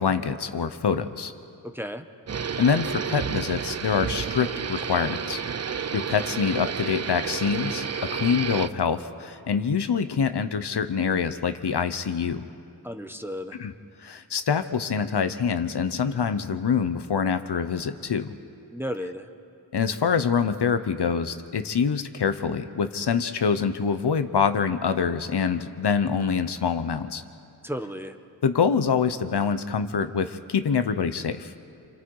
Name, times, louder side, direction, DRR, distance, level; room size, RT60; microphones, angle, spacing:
voice 1, 0.0-1.3 2.6-5.4 5.9-12.4 13.6-13.7 14.0-18.3 19.7-27.2 28.4-31.5, left 6 dB, 70° left, 10 dB, 1.0 m, -25 dB
voice 2, 1.6-2.0 12.8-13.6 18.7-19.3 27.6-28.2, equal, 5° right, 7 dB, 1.0 m, -33 dB
sound 1, 2.3-8.7, right 6 dB, 40° right, 0.6 m, -31 dB
28.5 x 27.0 x 4.8 m, 2.5 s
wide cardioid pair, 115°, 42 cm